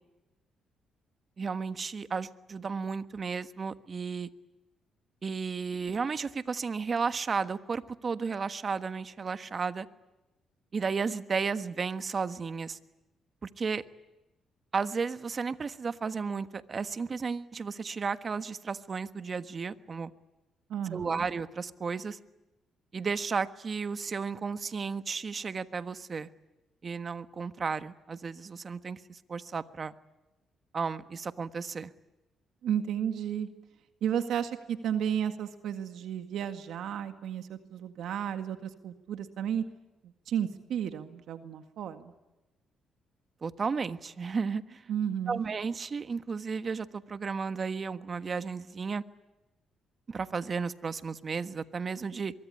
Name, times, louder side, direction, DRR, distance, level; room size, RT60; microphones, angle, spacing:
voice 1, 1.4-4.3 5.2-9.9 10.7-12.8 13.4-13.8 14.7-20.1 20.9-22.2 22.9-26.3 26.8-29.9 30.7-31.9 43.4-44.9 45.3-49.0 50.1-52.3, right 5 dB, 40° right, 11 dB, 1.4 m, -33 dB
voice 2, 20.7-21.3 32.6-33.5 34.0-39.7 40.0-42.1 44.9-45.5, right 9 dB, 75° right, 8 dB, 1.9 m, -33 dB
24.0 x 23.5 x 10.0 m, 1.0 s
cardioid pair, 90°, 0 cm